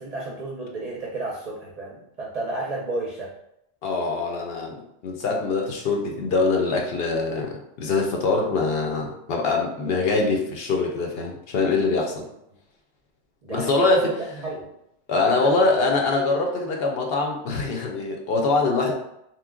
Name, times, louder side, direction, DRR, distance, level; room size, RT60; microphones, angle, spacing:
voice 1, 0.0-3.3 13.4-14.1 14.4-14.7 15.1-15.9 18.9-19.0, right 2 dB, 50° right, -3 dB, 0.5 m, -32 dB
voice 2, 3.8-4.8 5.0-12.2 13.5-14.1 15.1-18.9, left 3 dB, 65° left, 1 dB, 0.8 m, -23 dB
2.9 x 2.0 x 3.5 m, 0.77 s
omnidirectional pair, 1.1 m